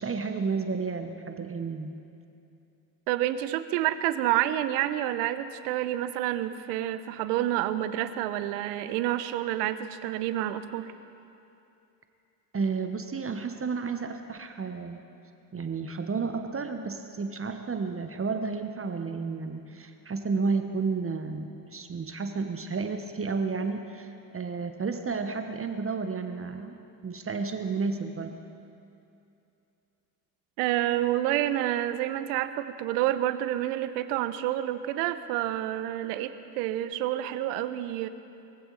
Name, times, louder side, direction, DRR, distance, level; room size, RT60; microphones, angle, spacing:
voice 1, 0.0-1.9 12.5-15.0 15.5-26.7 27.0-28.3, right 4 dB, 25° right, 6 dB, 1.2 m, -31 dB
voice 2, 3.1-10.9 30.6-38.1, right 13 dB, 70° right, 12 dB, 0.9 m, -28 dB
22.0 x 15.5 x 4.1 m, 2.7 s
hypercardioid pair, 55°, 49 cm